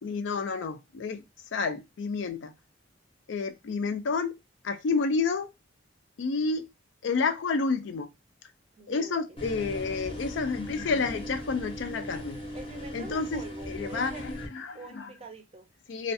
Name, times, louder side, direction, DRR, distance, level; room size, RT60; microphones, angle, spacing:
voice 1, 0.0-1.2 1.5-2.5 3.3-4.4 4.6-5.5 6.2-6.7 7.0-8.1 8.9-12.4 12.9-15.1 15.9-16.1, left 4 dB, 65° left, 0.4 m, -30 dB
voice 2, 8.8-9.5 12.5-14.3 14.7-15.7, right 2 dB, 30° right, 0.5 m, -45 dB
sound 1, 9.4-14.5, equal, 30° left, 0.7 m, -38 dB
2.4 x 2.3 x 2.5 m
head